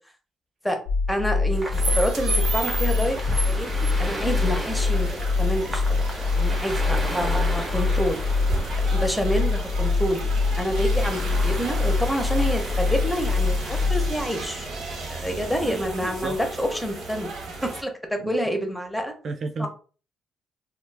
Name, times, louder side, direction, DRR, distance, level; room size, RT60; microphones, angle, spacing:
sound 1, 0.9-14.2, left 4 dB, 70° left, 0.5 m, -24 dB
voice 1, 1.1-3.7 4.0-8.2 8.9-10.2 10.6-14.7 15.1-17.3 17.6-19.1 19.6-19.7, equal, 5° left, 4 dB, 0.7 m, -28 dB
sound 2, 1.5-13.9, right 1 dB, 25° right, 0.9 m, -37 dB
sound 3, 1.7-17.8, right 2 dB, 80° right, 1.0 m, -34 dB
voice 2, 15.6-16.3 18.2-18.6 19.2-19.7, right 4 dB, 50° right, 5 dB, 0.4 m, -33 dB
2.2 x 2.2 x 3.3 m, 0.38 s
cardioid pair, 90°, 0 cm